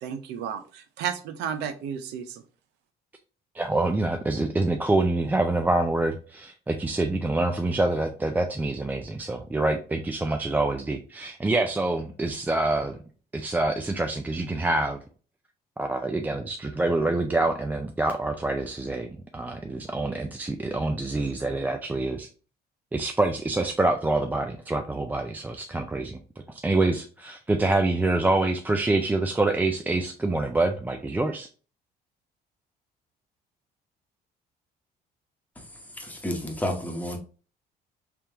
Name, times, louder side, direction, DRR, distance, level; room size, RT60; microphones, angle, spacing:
voice 1, 0.0-2.4, right 8 dB, 85° right, 9 dB, 0.6 m, -33 dB
voice 2, 3.6-13.0 13.3-15.0 15.8-22.3 22.9-26.2 26.6-31.5, right 2 dB, 10° right, 4 dB, 0.3 m, -26 dB
voice 3, 35.9-37.2, left 1 dB, 10° left, 2 dB, 1.0 m, -30 dB
3.4 x 3.0 x 3.4 m, 0.38 s
cardioid pair, 110°, 17 cm